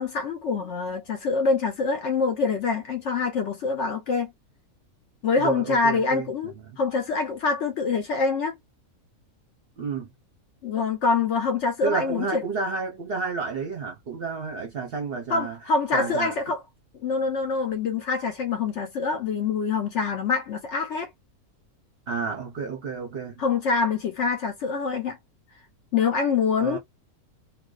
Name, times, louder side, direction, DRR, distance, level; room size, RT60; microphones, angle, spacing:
voice 1, 0.0-4.3 5.2-8.5 10.6-12.4 15.3-16.6 17.0-21.1 23.4-25.2 25.9-26.8, left 4 dB, 65° left, 0.8 m, -25 dB
voice 2, 5.4-6.3 6.6-6.8 9.8-10.1 11.8-15.6 15.9-16.3 22.1-23.4 26.6-26.8, right 4 dB, 55° right, 0.7 m, -31 dB
2.5 x 2.2 x 2.2 m
omnidirectional pair, 1.5 m